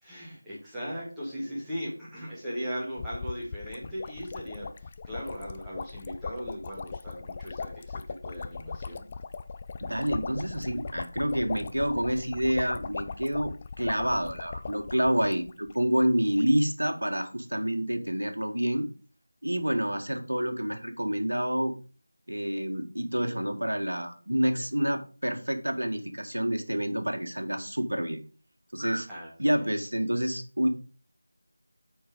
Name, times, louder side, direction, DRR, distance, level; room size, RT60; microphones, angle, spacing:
voice 1, 0.0-9.0 29.1-29.7, equal, 5° right, -9 dB, 2.1 m, -38 dB
sound 1, 3.0-15.7 16.0-16.1 16.3-16.6, left 5 dB, 25° left, 0.4 m, -39 dB
voice 2, 9.8-18.9 19.4-21.7 22.3-28.2 28.7-29.1 29.4-30.7, equal, 75° right, 7 dB, 1.6 m, -28 dB
8.7 x 4.8 x 5.0 m, 0.38 s
figure-of-eight pair, 165°, 0 cm